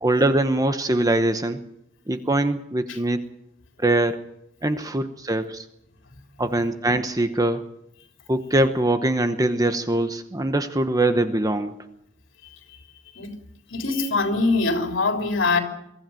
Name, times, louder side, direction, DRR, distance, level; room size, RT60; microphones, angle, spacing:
voice 1, 0.0-1.6 2.1-3.2 3.8-4.3 4.6-5.6 6.4-7.7 8.3-11.7, right 1 dB, 20° right, 8 dB, 0.9 m, -22 dB
voice 2, 13.7-15.6, left 3 dB, 70° left, 4 dB, 3.8 m, -23 dB
23.5 x 14.5 x 9.0 m, 0.81 s
head